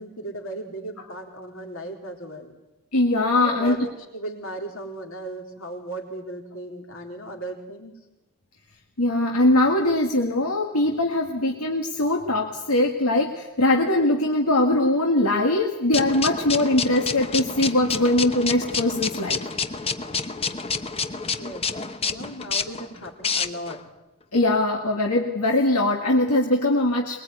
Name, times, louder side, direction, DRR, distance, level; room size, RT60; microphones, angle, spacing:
voice 1, 0.0-2.5 3.3-7.9 21.3-23.8, right 1 dB, 65° left, 2 dB, 4.0 m, -36 dB
voice 2, 2.9-3.9 9.0-19.4 24.3-27.2, left 1 dB, 85° left, 2 dB, 1.9 m, -21 dB
sound 1, 15.9-23.8, left 5 dB, 25° left, 0.9 m, -29 dB
23.0 x 21.0 x 9.3 m, 0.95 s
head